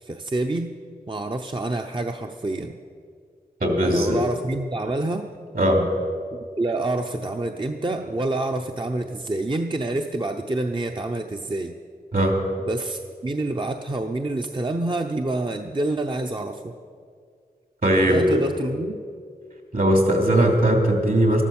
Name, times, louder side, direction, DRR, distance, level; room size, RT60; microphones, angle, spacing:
voice 1, 0.0-0.7 1.1-2.8 3.8-5.3 6.3-11.7 12.7-16.7 18.1-19.0, right 2 dB, 30° right, 4 dB, 0.8 m, -27 dB
voice 2, 3.6-4.2 5.5-5.8 12.1-12.4 17.8-18.4 19.7-21.4, right 1 dB, 60° right, 2 dB, 3.0 m, -19 dB
13.5 x 12.0 x 7.2 m, 2.1 s
wide cardioid pair, 55°, 16 cm